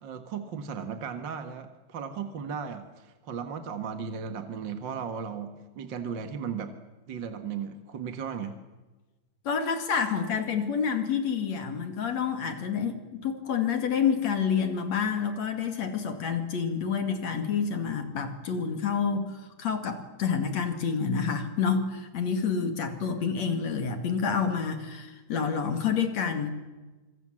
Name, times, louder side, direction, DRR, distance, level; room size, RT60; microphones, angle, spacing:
voice 1, 0.0-6.7 7.1-8.6, right 6 dB, 45° right, 8 dB, 1.7 m, -36 dB
voice 2, 9.5-26.5, left 6 dB, 60° left, 7 dB, 3.5 m, -28 dB
26.5 x 24.5 x 7.5 m, 1.2 s
omnidirectional pair, 3.6 m